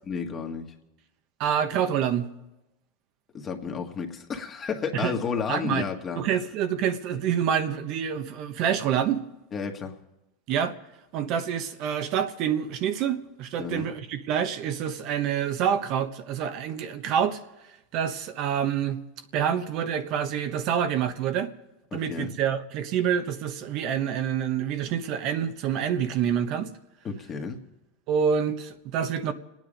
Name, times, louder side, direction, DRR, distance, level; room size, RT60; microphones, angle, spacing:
voice 1, 0.1-0.7 3.3-6.2 9.5-10.0 13.6-13.9 21.9-22.3 27.0-27.6, left 5 dB, 30° left, 3 dB, 1.8 m, -32 dB
voice 2, 1.4-2.3 4.9-5.1 5.5-5.9 6.2-9.2 10.5-10.7 11.1-17.4 17.9-19.0 19.3-21.5 21.9-26.7 28.1-29.3, right 8 dB, 50° right, 8 dB, 1.1 m, -27 dB
28.0 x 9.5 x 5.2 m, 0.94 s
supercardioid pair, 125°, 0 cm